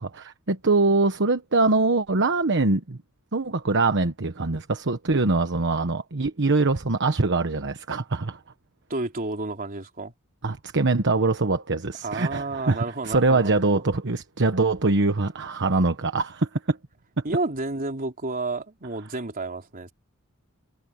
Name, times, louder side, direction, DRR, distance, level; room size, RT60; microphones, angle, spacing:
voice 1, 0.0-3.0 3.3-8.4 10.4-16.8, right 3 dB, 55° right, 1.2 m, -23 dB
voice 2, 8.9-10.1 12.0-13.8 17.2-19.9, right 2 dB, 40° right, 3.6 m, -31 dB
head